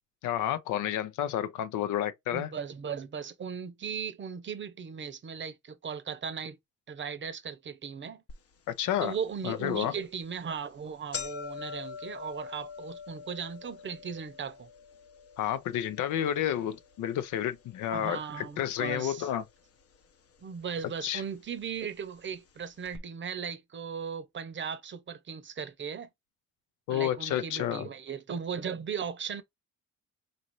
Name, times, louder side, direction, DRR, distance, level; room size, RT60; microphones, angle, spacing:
voice 1, 0.2-2.5 8.7-9.2 9.4-9.9 15.4-19.4 21.0-21.2 26.9-27.9, left 11 dB, 85° left, 0.6 m, -30 dB
voice 2, 2.3-6.6 6.9-8.2 9.0-14.7 17.9-19.3 20.4-26.1 26.9-29.4, right 6 dB, 40° right, 0.7 m, -37 dB
sound 1, 8.3-8.4 8.9-9.0 9.9-10.1 10.4-10.5 10.7-19.0 19.2-20.0 20.8-20.9 21.8-21.9 22.2-22.3 22.8-23.0, left 6 dB, 50° left, 0.8 m, -44 dB
4.0 x 2.6 x 3.0 m
cardioid pair, 90°, 30 cm